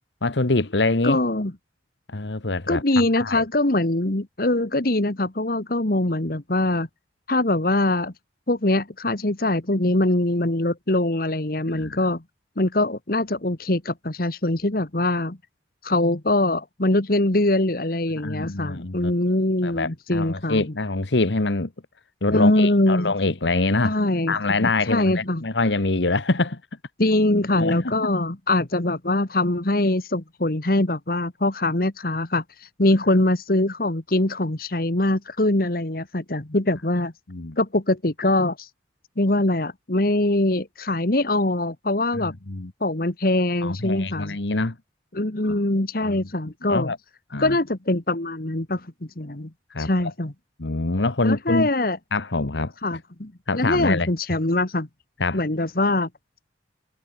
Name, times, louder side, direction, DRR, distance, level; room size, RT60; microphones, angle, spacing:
voice 1, 0.2-1.2 2.1-2.8 3.2-3.4 11.7-12.0 18.2-19.1 19.6-21.7 22.2-24.0 24.3-26.6 27.6-27.9 37.3-37.6 42.1-42.7 43.6-44.7 45.5-45.6 46.0-46.3 46.7-47.0 47.3-47.6 49.7-50.1 50.6-51.7 52.1-53.0 53.5-54.1 55.2-55.4, left 2 dB, 85° left, 1.4 m, -25 dB
voice 2, 1.0-1.5 2.7-6.9 7.3-8.1 8.5-12.2 12.6-15.4 15.8-20.6 22.3-23.1 23.8-25.4 27.0-32.4 32.8-37.1 37.6-38.7 39.2-42.3 42.8-44.4 45.1-46.9 47.4-48.9 49.2-49.5 49.8-50.3 51.2-52.0 52.8-54.9 55.3-56.1, left 1 dB, 55° left, 1.7 m, -23 dB
head